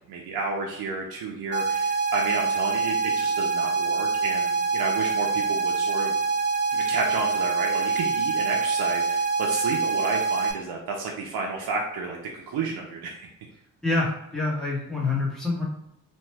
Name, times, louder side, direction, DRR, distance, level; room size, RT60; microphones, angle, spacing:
voice 1, 0.1-6.1 6.7-13.3, right 4 dB, 85° right, -1 dB, 0.6 m, -31 dB
sound 1, 1.5-10.5, right 4 dB, 30° right, 0.8 m, -25 dB
voice 2, 13.8-15.6, left 3 dB, ahead, -5 dB, 1.1 m, -26 dB
2.9 x 2.2 x 3.2 m, 0.78 s
cardioid pair, 90°, 37 cm